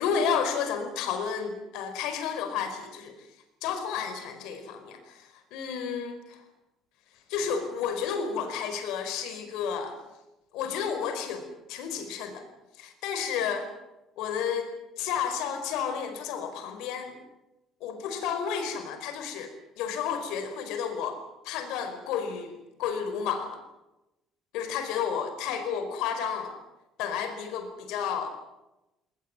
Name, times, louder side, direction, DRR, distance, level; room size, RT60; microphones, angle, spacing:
voice 1, 0.0-3.3 3.6-6.4 7.3-10.0 10.5-12.4 12.7-13.7 14.2-14.7 15.0-17.2 17.8-23.6 24.5-26.6 27.0-28.3, left 7 dB, 85° left, 7 dB, 4.8 m, -31 dB
22.0 x 19.5 x 9.7 m, 0.96 s
cardioid pair, 125°, 0 cm